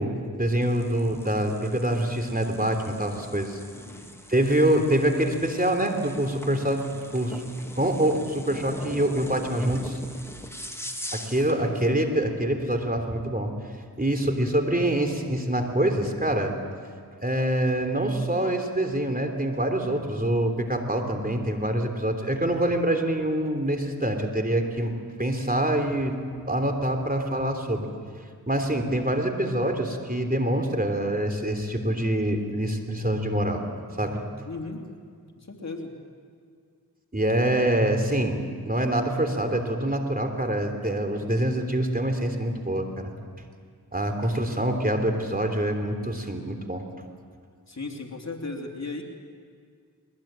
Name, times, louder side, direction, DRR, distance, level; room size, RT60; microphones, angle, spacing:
voice 1, 0.0-3.6 4.3-7.4 7.7-10.0 11.1-13.5 14.0-16.5 17.2-24.9 25.2-26.2 26.5-27.9 28.5-33.6 34.0-34.2 37.1-43.1 43.9-46.8, right 1 dB, 25° right, 4 dB, 3.3 m, -25 dB
sound 1, 0.6-11.6, left 1 dB, 5° left, 2.7 m, -42 dB
voice 2, 3.7-4.1 11.5-12.1 34.4-34.8 35.4-35.9 47.7-49.0, left 3 dB, 45° left, 2 dB, 3.2 m, -36 dB
21.5 x 21.0 x 9.0 m, 2.1 s
cardioid pair, 40°, 38 cm